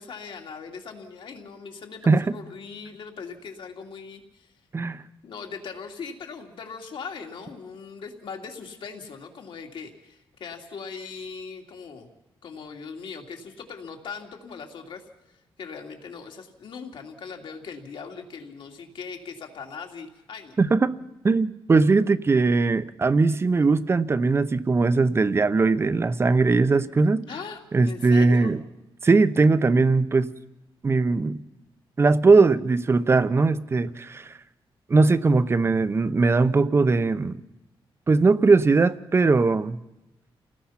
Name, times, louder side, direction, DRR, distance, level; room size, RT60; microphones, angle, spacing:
voice 1, 0.0-4.5 5.2-12.1 12.4-15.0 15.6-20.6 27.3-28.5, left 5 dB, 65° left, 3 dB, 2.8 m, -39 dB
voice 2, 20.6-21.0 21.2-27.3 27.7-28.6 29.0-30.3 30.8-31.4 32.0-34.3 34.9-37.4 38.1-39.8, right 3 dB, 25° right, 14 dB, 0.7 m, -20 dB
29.0 x 19.0 x 5.8 m, 0.97 s
wide cardioid pair, 145°, 9 cm